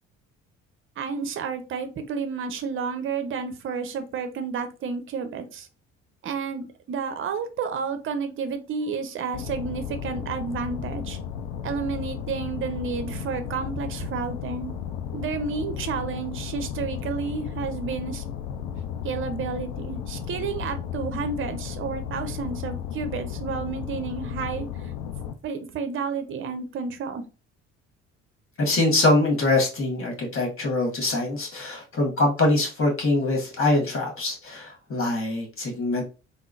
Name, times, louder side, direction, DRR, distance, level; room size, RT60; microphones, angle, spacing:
voice 1, 1.0-5.7 6.2-11.2 11.6-14.7 15.1-18.2 19.0-24.9 25.4-27.2, right 5 dB, 35° right, 9 dB, 0.6 m, -31 dB
sound 1, 9.3-25.3, left 8 dB, 65° left, 0.5 m, -34 dB
voice 2, 28.6-36.0, left 2 dB, 35° left, 1 dB, 1.5 m, -23 dB
3.6 x 2.0 x 2.4 m, 0.31 s
figure-of-eight pair, 55°, 36 cm